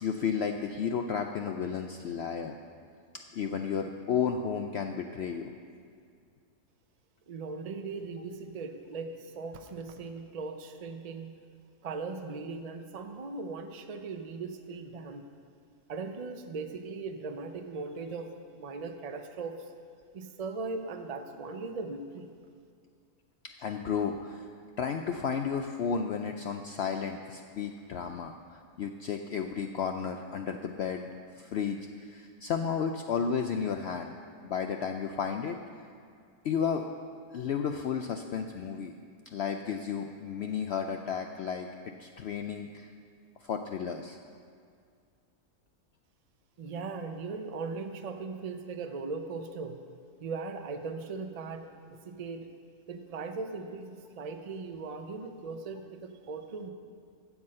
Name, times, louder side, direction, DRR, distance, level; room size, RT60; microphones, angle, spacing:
voice 1, 0.0-2.5 3.3-5.5 23.6-24.4 24.8-31.0 31.4-34.1 34.4-35.6 36.4-36.8 37.3-38.9 39.3-41.7 42.0-42.9 43.4-44.2, left 6 dB, 70° left, 5 dB, 0.6 m, -32 dB
voice 2, 7.3-11.4 11.8-15.2 15.9-19.7 20.1-22.3 46.6-49.8 50.2-52.5 52.9-56.7, right 4 dB, 65° right, 6 dB, 0.3 m, -39 dB
9.6 x 7.1 x 7.6 m, 2.2 s
omnidirectional pair, 1.6 m